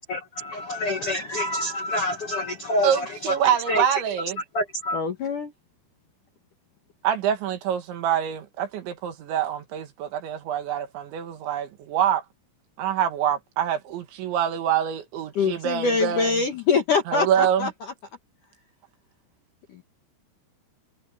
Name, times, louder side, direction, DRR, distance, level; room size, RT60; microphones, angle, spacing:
voice 1, 0.1-3.3 3.7-3.8 4.5-5.0, left 1 dB, 80° left, 1.2 m, -27 dB
voice 2, 2.8-4.4 7.0-12.2 12.8-16.4 17.1-17.7, right 9 dB, 65° right, 3.9 m, -25 dB
voice 3, 4.9-5.5 15.4-17.7 19.7-19.8, left 5 dB, 60° left, 2.2 m, -24 dB
omnidirectional pair, 5.9 m